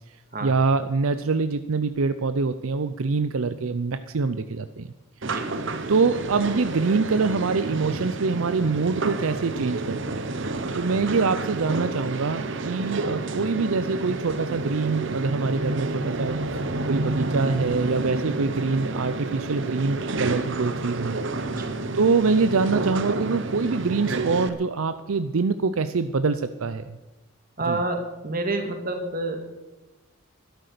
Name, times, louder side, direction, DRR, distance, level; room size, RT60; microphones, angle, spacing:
voice 1, 0.4-4.9 5.9-10.2 10.7-16.4 16.9-21.2 21.5-21.7 21.9-27.0 27.7-27.8, right 4 dB, 70° right, 11 dB, 0.6 m, -24 dB
voice 2, 5.2-5.6 21.5-21.8 27.6-29.6, right 2 dB, 40° right, 5 dB, 1.9 m, -29 dB
sound 1, 5.2-24.5, right 2 dB, 55° right, 1.0 m, -30 dB
12.5 x 12.0 x 6.8 m, 1.1 s
head